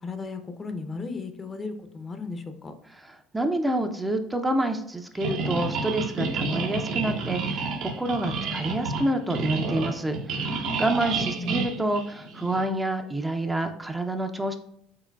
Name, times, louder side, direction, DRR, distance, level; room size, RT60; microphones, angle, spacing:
voice 1, 0.0-2.7 8.4-8.6 11.4-11.9, left 4 dB, 30° left, 8 dB, 0.6 m, -36 dB
voice 2, 2.9-14.6, right 1 dB, 15° right, 6 dB, 0.4 m, -28 dB
sound 1, 5.2-12.6, right 4 dB, 65° right, 0.8 m, -30 dB
4.7 x 3.7 x 2.3 m, 0.76 s
supercardioid pair, 80°, 0 cm